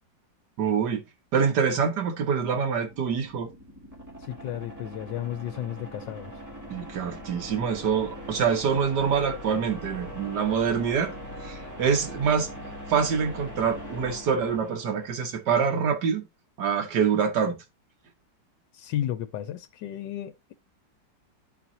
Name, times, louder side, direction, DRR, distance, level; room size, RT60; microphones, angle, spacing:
voice 1, 0.6-1.0 1.3-3.5 6.7-11.1 11.4-12.5 12.9-16.2 16.6-17.6, right 6 dB, 70° right, 1.8 m, -25 dB
sound 1, 2.7-15.4, equal, 10° right, 1.6 m, -41 dB
voice 2, 4.3-6.3 18.7-20.5, left 11 dB, 90° left, 1.3 m, -33 dB
12.5 x 4.3 x 2.7 m
omnidirectional pair, 1.9 m